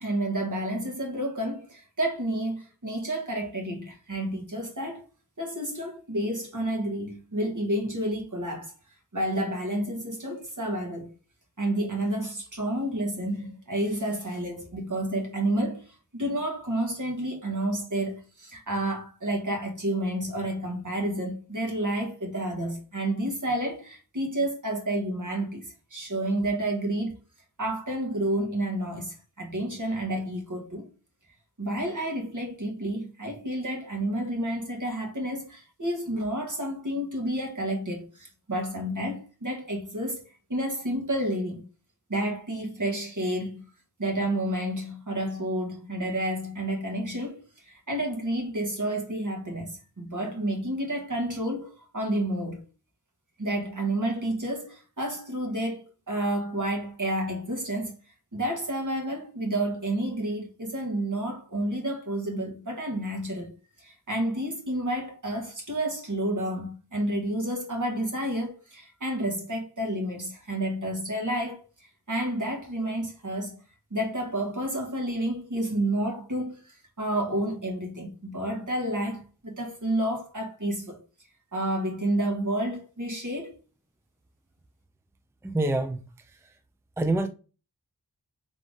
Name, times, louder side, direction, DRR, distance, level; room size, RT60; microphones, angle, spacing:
voice 1, 0.0-5.0 5.4-8.7 9.1-11.1 11.6-27.2 27.6-30.9 31.6-41.7 42.1-43.6 44.0-52.6 53.4-58.0 58.3-63.5 63.8-73.6 73.9-81.0 81.5-83.6, right 1 dB, 50° right, 1.8 m, -30 dB
voice 2, 85.4-86.6 87.0-87.3, right 2 dB, 5° right, 0.5 m, -27 dB
3.7 x 3.5 x 3.8 m
wide cardioid pair, 45°, 38 cm